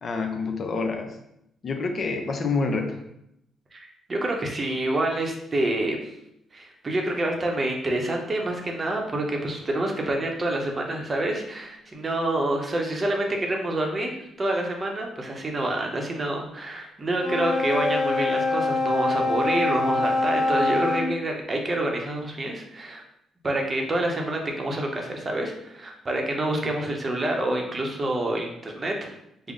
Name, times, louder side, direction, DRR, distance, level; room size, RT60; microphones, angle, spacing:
voice 1, 0.0-1.1 1.6-3.0, left 4 dB, 50° left, 4 dB, 0.5 m, -27 dB
voice 2, 3.7-6.0 6.5-23.0 23.4-29.2, right 1 dB, 30° right, 1 dB, 0.7 m, -27 dB
Wind instrument woodwind instrument, 17.1-21.1, left 2 dB, 15° left, 1.1 m, -24 dB
3.6 x 2.0 x 3.6 m, 0.79 s
cardioid pair, 90°, 0 cm